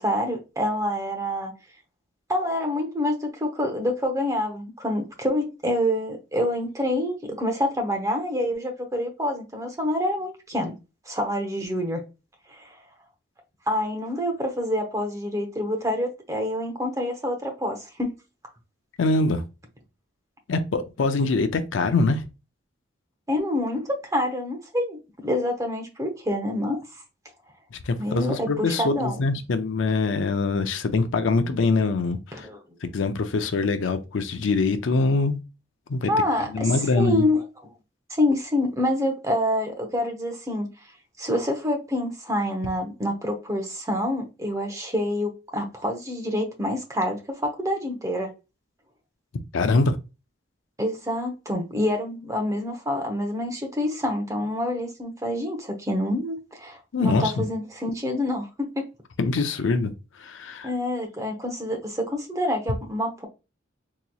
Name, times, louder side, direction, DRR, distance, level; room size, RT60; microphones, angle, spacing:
voice 1, 0.0-1.5 2.3-10.7 11.1-12.0 12.5-12.7 13.7-18.1 23.3-26.8 28.0-29.2 32.3-32.6 36.1-37.4 38.2-40.7 41.2-48.3 50.8-58.8 60.6-63.3, left 1 dB, 15° right, 0.8 m, -27 dB
voice 2, 19.0-19.4 20.5-22.3 27.9-32.5 32.8-35.4 35.9-36.1 36.5-37.3 49.5-50.0 56.9-57.4 59.2-59.9 60.2-60.7, left 3 dB, 75° left, 0.5 m, -23 dB
3.9 x 3.0 x 2.3 m
head